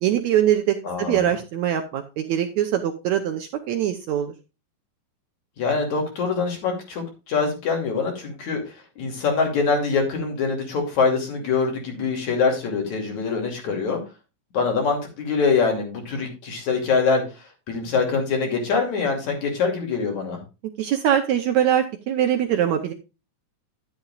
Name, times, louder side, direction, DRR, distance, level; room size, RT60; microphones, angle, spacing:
voice 1, 0.0-4.3 20.8-22.9, right 10 dB, 75° right, 6 dB, 1.8 m, -22 dB
voice 2, 0.8-1.3 5.6-14.0 14.5-17.2 17.7-20.4, left 4 dB, 55° left, 2 dB, 3.9 m, -24 dB
11.0 x 10.5 x 2.4 m, 0.28 s
omnidirectional pair, 3.9 m